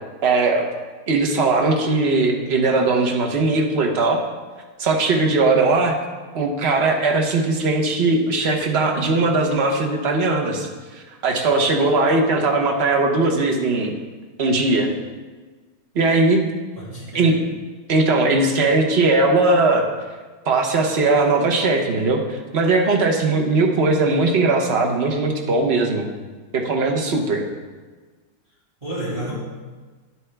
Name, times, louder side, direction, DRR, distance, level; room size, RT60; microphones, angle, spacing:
voice 1, 0.2-0.6 1.1-4.2 4.8-6.0 6.3-13.9 14.4-14.9 15.9-16.4 17.1-17.4 17.9-19.9 20.5-26.1 26.5-27.4, right 3 dB, 45° right, 2 dB, 1.0 m, -19 dB
voice 2, 16.8-17.4 28.8-29.3, right 1 dB, 20° right, -10 dB, 2.5 m, -30 dB
9.8 x 7.8 x 3.4 m, 1.4 s
omnidirectional pair, 2.0 m